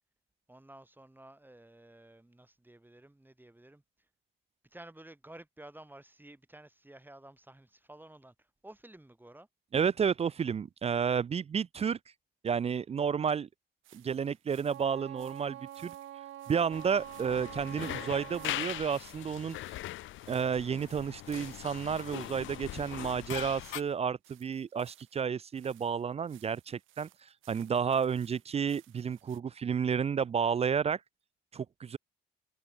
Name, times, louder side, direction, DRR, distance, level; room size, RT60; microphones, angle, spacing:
voice 1, 0.5-3.8 4.7-8.3 8.6-9.5 22.7-23.0, right 1 dB, 10° right, 2.9 m, -53 dB
voice 2, 9.7-12.0 12.4-13.5 13.9-15.9 16.5-19.6 20.3-27.1 27.5-31.0 31.5-32.0, right 7 dB, 30° right, 0.4 m, -31 dB
sound 1, 13.8-29.4, right 16 dB, 85° right, 1.2 m, -62 dB
Wind instrument woodwind instrument, 14.6-18.9, right 13 dB, 70° right, 0.8 m, -46 dB
sound 2, 16.7-23.8, left 16 dB, 75° left, 0.5 m, -41 dB
cardioid pair, 90°, 20 cm